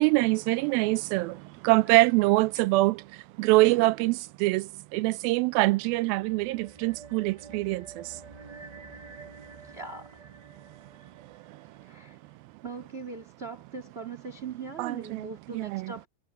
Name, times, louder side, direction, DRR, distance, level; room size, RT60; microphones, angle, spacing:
voice 1, 0.0-8.2 10.6-10.7 11.2-11.7 14.8-15.9, right 20 dB, 90° right, 2.4 m, -25 dB
sound 1, 5.5-12.2, right 4 dB, 35° right, 0.6 m, -49 dB
voice 2, 9.6-10.2 11.8-12.2 12.6-16.1, right 5 dB, 20° right, 2.6 m, -40 dB
omnidirectional pair, 4.1 m